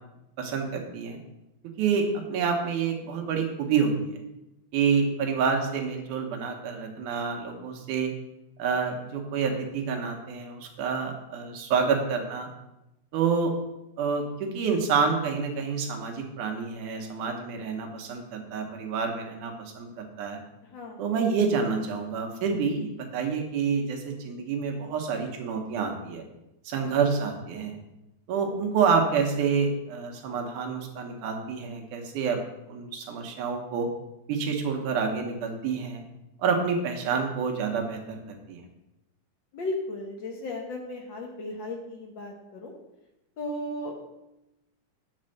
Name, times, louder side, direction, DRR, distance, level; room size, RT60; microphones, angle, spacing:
voice 1, 0.4-1.2 1.8-4.2 4.7-8.1 8.6-12.5 13.1-13.5 14.0-20.4 21.0-26.2 26.7-27.8 28.3-32.4 32.7-33.9 34.3-36.0 36.4-38.7, right 5 dB, 90° right, 2 dB, 2.6 m, -28 dB
voice 2, 20.7-21.0 39.5-42.7 43.4-43.9, left 1 dB, 60° left, 1 dB, 1.2 m, -35 dB
8.6 x 4.3 x 6.4 m, 0.92 s
omnidirectional pair, 3.4 m